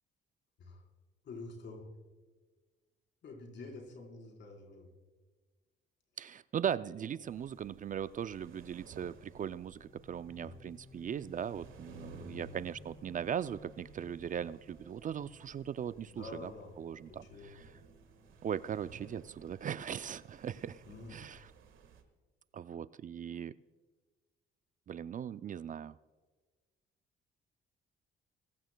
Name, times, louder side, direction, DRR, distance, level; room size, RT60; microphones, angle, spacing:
voice 1, 1.2-1.9 3.2-4.9 10.3-10.6 11.9-12.6 16.1-16.7 17.1-17.5 20.9-21.2, left 3 dB, 65° left, 1 dB, 4.3 m, -48 dB
voice 2, 6.2-16.5 16.8-17.7 18.4-20.8 21.1-21.5 22.5-23.6 24.9-26.0, right 8 dB, 40° right, 15 dB, 0.4 m, -39 dB
sound 1, 7.2-22.0, right 6 dB, 80° right, 1.7 m, -58 dB
sound 2, 9.7-18.8, left 2 dB, 30° left, 3.1 m, -60 dB
21.5 x 15.5 x 2.2 m, 1.4 s
cardioid pair, 90°, 20 cm